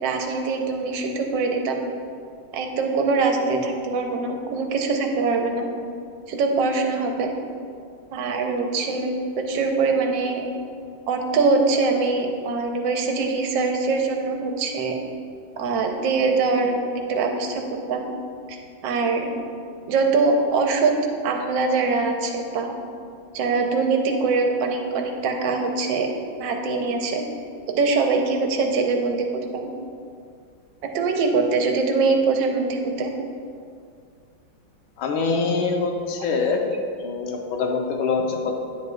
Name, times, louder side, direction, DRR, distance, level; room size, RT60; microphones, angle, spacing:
voice 1, 0.0-1.8 2.5-5.7 6.3-7.3 8.1-10.5 11.1-15.0 15.6-16.8 17.1-17.6 17.9-18.0 18.5-18.6 18.8-19.3 19.9-20.9 21.2-22.7 23.3-26.1 26.4-27.2 27.7-29.3 29.5-29.7 30.8-33.1, right 4 dB, 75° right, 3 dB, 1.4 m, -23 dB
voice 2, 35.0-36.6 37.0-38.7, left 4 dB, 85° left, 2 dB, 1.6 m, -24 dB
9.0 x 7.5 x 2.3 m, 2.3 s
omnidirectional pair, 2.2 m